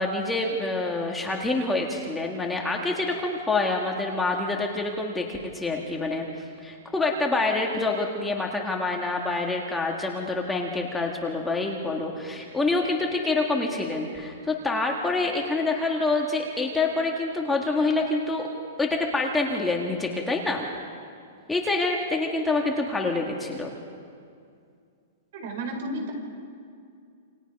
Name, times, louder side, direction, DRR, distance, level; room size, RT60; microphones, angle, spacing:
voice 1, 0.0-6.2 6.6-18.5 18.8-20.7 21.5-23.7, left 3 dB, 5° left, 0 dB, 1.8 m, -26 dB
voice 2, 25.3-26.1, right 1 dB, 55° right, 4 dB, 5.4 m, -32 dB
28.5 x 27.5 x 5.4 m, 2.3 s
hypercardioid pair, 165°, 0 cm